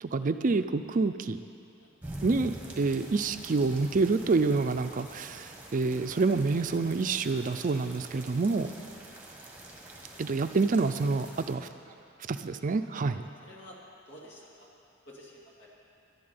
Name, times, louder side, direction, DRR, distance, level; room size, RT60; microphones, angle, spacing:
voice 1, 0.0-1.4 2.2-8.7 10.2-11.7 12.3-13.2, right 3 dB, 45° right, 9 dB, 0.4 m, -27 dB
sound 1, 2.0-11.6, right 1 dB, 10° right, 1.6 m, -46 dB
voice 2, 13.0-13.8 14.1-14.7 15.1-15.7, equal, 65° left, -3 dB, 2.6 m, -51 dB
12.0 x 7.5 x 9.6 m, 2.7 s
head